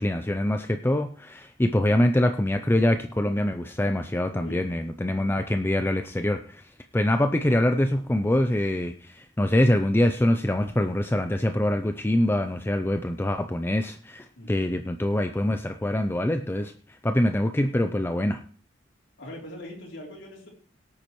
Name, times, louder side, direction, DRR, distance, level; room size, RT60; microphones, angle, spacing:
voice 1, 0.0-18.4, left 1 dB, 10° left, 7 dB, 0.5 m, -24 dB
voice 2, 4.3-4.7 14.4-14.8 19.2-20.5, left 1 dB, 85° left, -3 dB, 3.7 m, -42 dB
18.0 x 8.6 x 3.2 m, 0.42 s
head